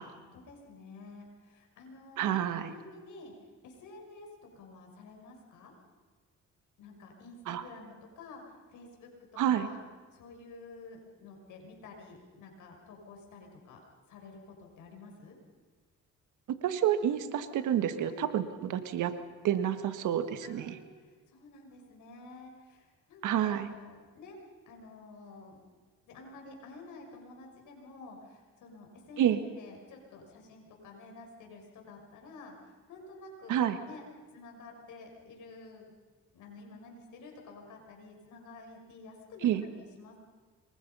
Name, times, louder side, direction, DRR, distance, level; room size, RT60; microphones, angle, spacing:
voice 1, 0.2-3.3 3.6-5.7 6.8-9.1 9.5-9.8 10.1-13.8 14.1-15.4 18.1-18.3 20.4-24.4 24.7-25.8 26.1-34.0 34.3-35.9 36.3-40.2, left 3 dB, 85° left, 1 dB, 6.2 m, -50 dB
voice 2, 2.2-2.7 7.5-7.6 9.4-9.7 16.5-18.4 18.7-19.1 19.4-20.8 23.2-23.7 29.2-29.4 33.5-33.8 39.4-39.6, right 10 dB, 80° right, 10 dB, 1.7 m, -28 dB
27.0 x 22.5 x 5.6 m, 1.4 s
cardioid pair, 90°, 30 cm